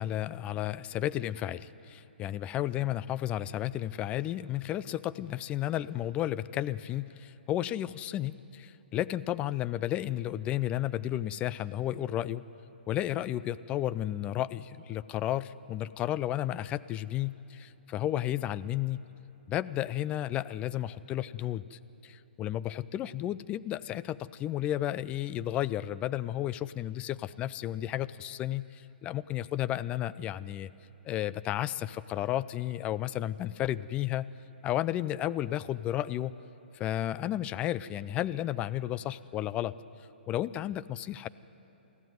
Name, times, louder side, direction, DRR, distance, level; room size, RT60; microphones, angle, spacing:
voice 1, 0.0-12.4 12.9-19.0 19.5-30.7 31.0-34.3 34.6-36.3 36.7-39.7 40.3-41.3, left 12 dB, 20° left, 17 dB, 0.4 m, -33 dB
23.5 x 15.0 x 9.4 m, 3.0 s
hypercardioid pair, 135°, 6 cm